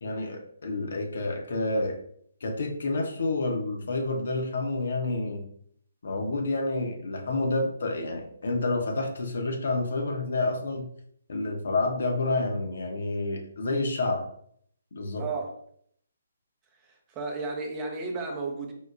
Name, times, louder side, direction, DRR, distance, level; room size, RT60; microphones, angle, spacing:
voice 1, 0.0-2.0 2.4-5.4 6.0-10.9 11.3-14.3 14.9-15.2, left 2 dB, 60° left, 2 dB, 0.7 m, -29 dB
voice 2, 15.2-15.6 16.7-18.7, right 3 dB, 20° right, 1 dB, 0.6 m, -33 dB
4.4 x 2.1 x 2.4 m, 0.65 s
figure-of-eight pair, 140°, 0 cm